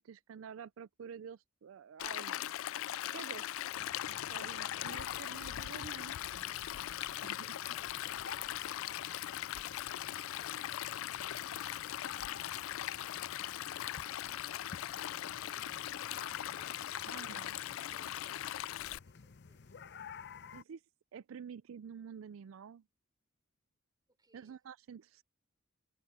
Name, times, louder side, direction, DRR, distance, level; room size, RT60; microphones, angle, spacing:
voice 1, 0.0-2.5 3.1-3.4 4.1-6.8 7.2-7.5 17.1-17.6 20.5-20.8 21.1-22.8 24.3-25.2, right 7 dB, 80° right, 0.4 m, -49 dB
Stream, 2.0-19.0, left 12 dB, 85° left, 0.3 m, -40 dB
voice 2, 3.0-3.9 4.1-5.7 7.3-19.8 24.1-24.6, right 2 dB, 20° right, 4.0 m, -72 dB
sound 1, 3.8-20.6, left 6 dB, 60° left, 0.7 m, -52 dB
head